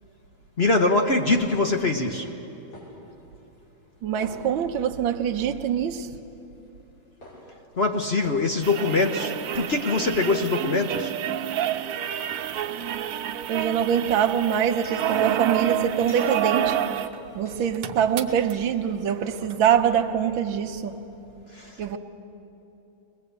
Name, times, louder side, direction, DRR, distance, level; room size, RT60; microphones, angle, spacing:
voice 1, 0.6-2.3 7.8-11.1 21.5-21.8, left 3 dB, 45° left, 4 dB, 0.8 m, -23 dB
sound 1, 1.5-2.0 2.7-2.9 4.2-4.9 5.3-5.5 6.8-6.9 7.2-7.4 8.2-9.8 10.6-10.8 11.4-11.5 12.1-13.2 14.3-15.1 15.8-18.7 18.9-19.0 19.2-19.6, left 1 dB, 85° left, 6.6 m, -47 dB
voice 2, 4.0-6.1 13.5-16.8 17.3-21.0 21.8-22.0, right 8 dB, 70° right, 6 dB, 1.6 m, -24 dB
sound 2, 8.6-17.2 17.5-17.6 17.7-18.5 19.5-19.6, right 11 dB, 90° right, 1.7 m, -29 dB
22.0 x 20.5 x 8.1 m, 3.0 s
omnidirectional pair, 2.4 m